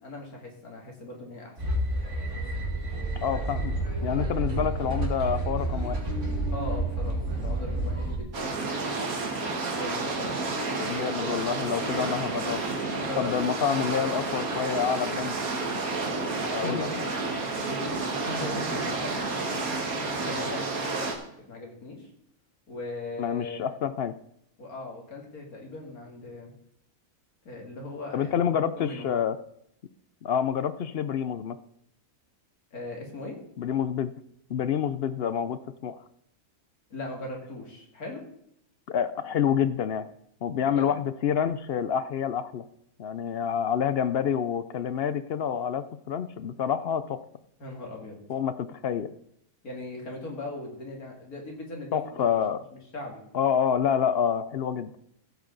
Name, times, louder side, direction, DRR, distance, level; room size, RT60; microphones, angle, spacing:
voice 1, 0.0-1.6 3.3-3.5 6.5-9.0 9.8-10.4 11.0-11.3 13.0-14.0 16.3-17.1 17.6-22.1 22.7-23.7 24.6-26.5 27.4-28.4 28.8-29.1 32.7-33.4 36.9-38.2 40.7-40.9 47.6-48.2 49.6-52.4 52.7-53.2, left 2 dB, 85° left, 0 dB, 2.7 m, -39 dB
sound 1, 1.6-8.2, right 1 dB, 55° right, 2.5 m, -29 dB
voice 2, 3.2-3.7 4.0-6.0 10.8-12.6 13.2-15.4 16.5-16.9 23.2-24.1 28.1-29.4 30.2-31.6 33.6-34.1 34.5-36.0 38.9-40.1 40.4-42.6 43.0-47.2 48.3-49.1 51.9-52.6 53.3-54.9, left 8 dB, 65° left, 13 dB, 0.6 m, -27 dB
sound 2, 8.3-21.2, right 3 dB, 75° right, 2.0 m, -30 dB
15.0 x 8.2 x 3.9 m, 0.74 s
omnidirectional pair, 1.5 m